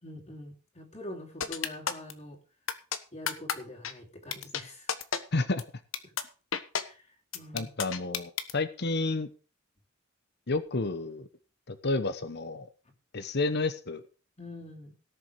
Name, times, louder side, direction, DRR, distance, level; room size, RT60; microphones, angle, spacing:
voice 1, 0.0-2.4 3.1-4.9 6.0-6.1 6.8-7.7 14.4-14.9, left 1 dB, 35° left, -1 dB, 3.1 m, -45 dB
sound 1, 1.4-2.1 2.7-3.0 3.3-3.5 3.8-3.9 4.3-4.6 4.9-5.2 5.6-5.7 5.9-6.2 6.5-6.8 7.3-8.5, left 7 dB, 75° left, 1.3 m, -30 dB
voice 2, 5.3-5.6 7.5-9.3 10.5-11.3 11.7-12.7 13.1-14.0, left 3 dB, 55° left, 12 dB, 1.1 m, -30 dB
17.5 x 7.2 x 4.8 m, 0.35 s
head